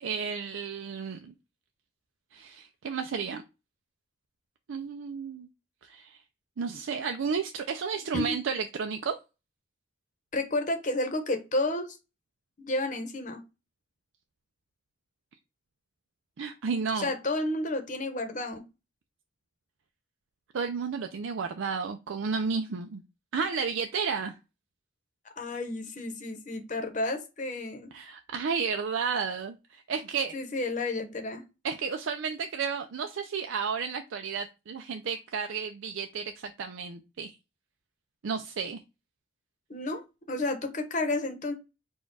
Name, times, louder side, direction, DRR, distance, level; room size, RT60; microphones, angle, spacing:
voice 1, 0.0-1.3 2.3-3.4 4.7-5.5 5.8-6.2 6.6-9.2 16.4-17.1 20.5-23.0 23.3-24.4 27.9-30.3 31.6-37.4 38.2-38.8, right 5 dB, 80° right, 6 dB, 0.4 m, -32 dB
voice 2, 10.3-12.0 12.6-13.4 17.0-18.6 25.4-27.9 30.3-31.4 39.7-40.0 40.3-41.5, left 2 dB, 40° left, 5 dB, 0.9 m, -31 dB
4.3 x 2.3 x 4.6 m, 0.27 s
head